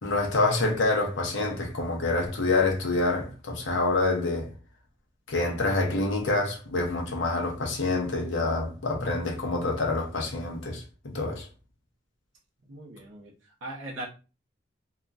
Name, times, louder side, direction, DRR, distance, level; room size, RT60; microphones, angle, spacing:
voice 1, 0.0-4.5 5.3-11.5, left 2 dB, 85° left, 0.8 m, -27 dB
voice 2, 12.7-13.3 13.6-14.1, right 1 dB, 85° right, 0.7 m, -39 dB
2.8 x 2.4 x 2.3 m
head